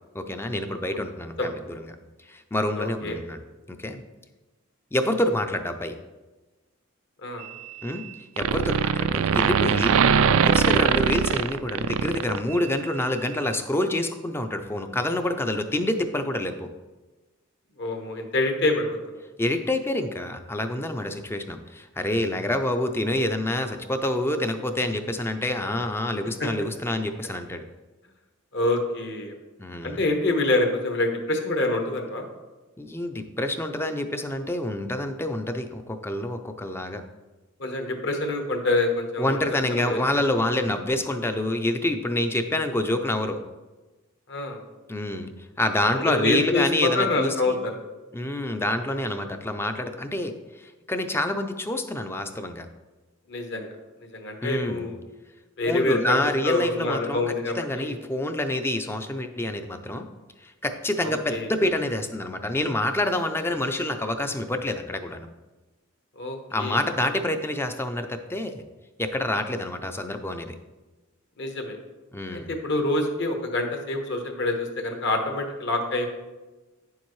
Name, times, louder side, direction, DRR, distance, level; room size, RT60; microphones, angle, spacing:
voice 1, 0.1-1.9 2.3-3.4 3.7-4.0 4.9-6.0 7.8-8.0 8.4-10.0 10.4-16.7 19.4-27.6 29.6-30.0 32.8-37.0 39.2-43.4 44.9-45.3 45.6-47.6 48.1-52.7 54.4-54.9 55.7-60.0 60.4-65.3 66.5-68.6 69.0-70.6 72.1-72.5, left 1 dB, 10° left, 7 dB, 0.4 m, -27 dB
voice 2, 2.7-3.2 7.2-7.4 17.8-19.0 26.4-26.5 28.5-29.3 29.8-32.2 37.6-39.4 39.7-40.2 44.3-44.6 45.9-47.7 53.3-53.7 54.0-55.0 55.6-58.0 61.0-61.5 66.2-66.8 71.4-71.8 72.3-76.1, left 2 dB, 55° left, 4 dB, 1.1 m, -26 dB
sound 1, 7.4-8.1 8.4-12.8, right 6 dB, 75° right, 0.4 m, -22 dB
9.4 x 7.2 x 3.1 m, 1.2 s
head